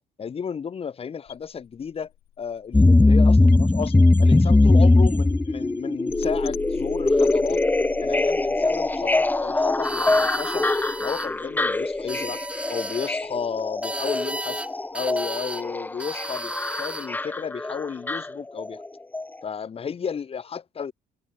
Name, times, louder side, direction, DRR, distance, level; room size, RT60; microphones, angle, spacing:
voice 1, 0.0-2.1 2.4-7.6 8.0-10.7 11.0-12.4 12.7-14.6 14.9-18.8 19.4-20.9, left 6 dB, 35° left, 1.6 m, -33 dB
sound 1, 1.3-13.3, left 12 dB, 65° left, 2.1 m, -44 dB
sound 2, 2.7-18.9 19.1-19.2, left 2 dB, 10° left, 0.8 m, -21 dB
sound 3, 9.8-11.3 11.9-13.2 13.8-14.7 14.9-15.7 16.0-17.1, right 1 dB, 5° right, 1.5 m, -34 dB
cardioid pair, 110°, 17 cm